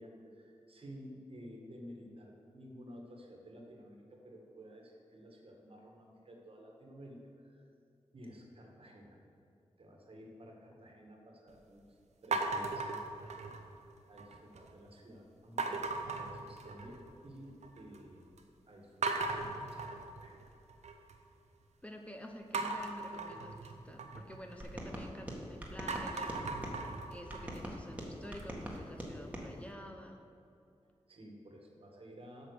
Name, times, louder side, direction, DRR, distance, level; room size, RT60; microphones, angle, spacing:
voice 1, 0.0-7.7 8.1-9.2 9.8-11.8 12.2-13.5 14.1-17.0 17.2-18.3 18.7-20.4 31.1-32.5, equal, 55° right, 0 dB, 1.7 m, -53 dB
sound 1, 12.3-13.8 14.2-14.7 15.6-17.1 17.4-18.0 18.4-18.5 19.0-21.1 22.5-25.3 25.7-28.6, right 3 dB, 80° right, 0.8 m, -38 dB
voice 2, 21.8-30.2, equal, 10° left, 3 dB, 0.7 m, -49 dB
sound 2, 24.6-26.8 27.3-29.5, equal, 10° right, 1.6 m, -43 dB
8.0 x 6.0 x 6.5 m, 2.6 s
cardioid pair, 65°, 11 cm